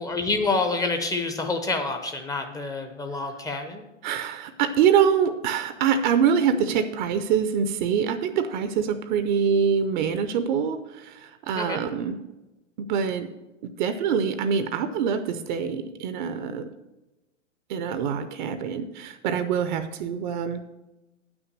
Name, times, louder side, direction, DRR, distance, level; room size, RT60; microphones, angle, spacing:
voice 1, 0.0-3.9 11.5-11.8, left 3 dB, 10° left, 6 dB, 0.7 m, -27 dB
voice 2, 4.0-12.2 12.8-13.3 13.8-16.7 17.7-20.6, right 7 dB, 40° right, 10 dB, 0.6 m, -25 dB
9.2 x 6.1 x 6.6 m, 1.0 s
figure-of-eight pair, 110°, 37 cm